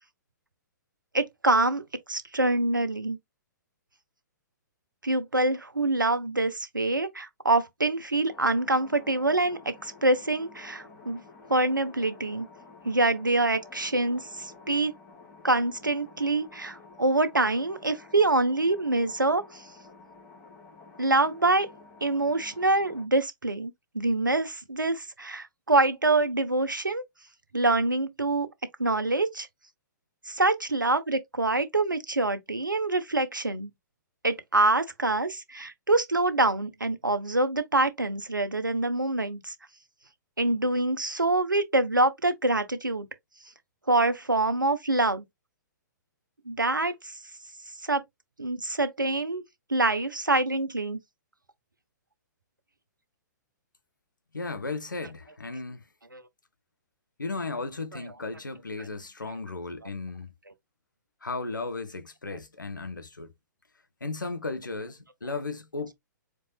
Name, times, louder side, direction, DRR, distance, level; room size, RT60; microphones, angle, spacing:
voice 1, 1.1-1.8 2.1-3.2 5.0-11.2 11.5-12.5 12.8-14.9 15.4-19.6 21.0-21.7 22.0-27.0 27.5-28.5 28.8-29.5 30.3-33.7 34.2-39.5 40.4-43.1 43.9-45.2 46.5-47.1 47.8-48.0 48.4-49.4 49.7-51.0 56.1-56.2, right 2 dB, 80° right, 0.9 m, -25 dB
sound 1, 8.3-23.0, left 3 dB, 25° left, 2.3 m, -51 dB
voice 2, 54.3-55.8 57.2-60.3 61.2-63.3 64.0-65.9, left 3 dB, 75° left, 0.8 m, -35 dB
4.6 x 4.4 x 2.2 m
figure-of-eight pair, 120°, 10 cm